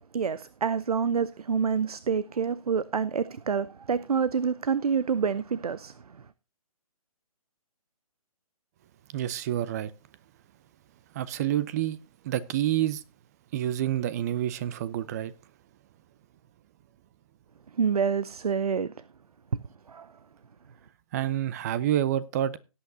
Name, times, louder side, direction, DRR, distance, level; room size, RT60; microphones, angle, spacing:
voice 1, 0.1-5.9 17.8-18.9 19.9-20.1, right 6 dB, 80° right, 0.6 m, -27 dB
voice 2, 9.1-9.9 11.1-12.0 12.2-13.0 13.5-15.3 21.1-22.6, right 12 dB, 25° right, 0.5 m, -28 dB
17.5 x 8.5 x 2.7 m
figure-of-eight pair, 145°, 19 cm